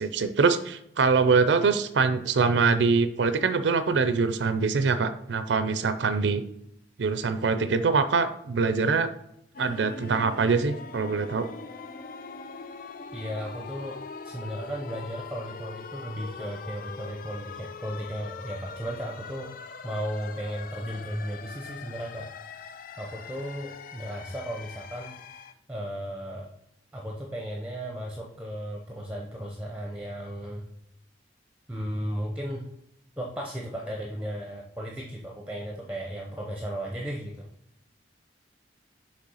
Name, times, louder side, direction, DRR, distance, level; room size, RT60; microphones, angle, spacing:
voice 1, 0.0-6.4 7.0-9.1 9.6-11.5, right 4 dB, 70° right, 11 dB, 0.5 m, -24 dB
sound 1, 9.5-25.5, left 5 dB, 50° left, 0.4 m, -42 dB
voice 2, 13.1-14.0 14.2-19.6 19.8-22.3 23.0-26.5 26.9-30.7 31.7-32.7 33.2-37.5, equal, 5° right, 0 dB, 0.7 m, -35 dB
6.5 x 3.2 x 5.5 m, 0.74 s
head